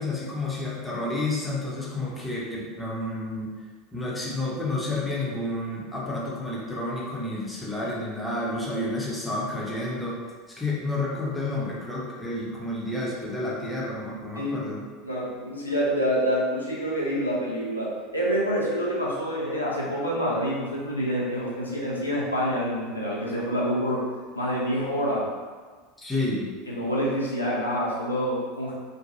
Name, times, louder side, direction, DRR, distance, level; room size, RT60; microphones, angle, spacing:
voice 1, 0.0-3.5 3.9-10.1 10.5-14.9 26.0-26.5, left 2 dB, 10° left, -5 dB, 0.7 m, -30 dB
voice 2, 14.4-14.7 15.0-24.1 24.4-25.3 26.7-28.7, equal, 85° left, -6 dB, 0.5 m, -27 dB
3.0 x 2.2 x 2.6 m, 1.5 s
figure-of-eight pair, 75°, 0 cm